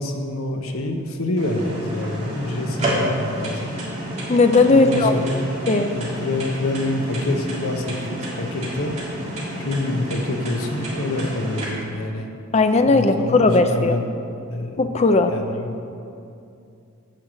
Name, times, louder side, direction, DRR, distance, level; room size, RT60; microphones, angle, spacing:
voice 1, 0.0-3.7 4.6-5.5 5.9-9.0 9.6-12.3 12.9-14.1 14.5-14.9 15.3-15.8, left 2 dB, 75° left, 4 dB, 0.9 m, -27 dB
sound 1, 1.4-11.6, right 1 dB, 30° right, 1.9 m, -29 dB
voice 2, 4.3-5.1 5.7-5.9 12.5-14.0 14.8-15.3, left 3 dB, 30° left, 7 dB, 0.4 m, -16 dB
8.9 x 4.8 x 7.5 m, 2.6 s
head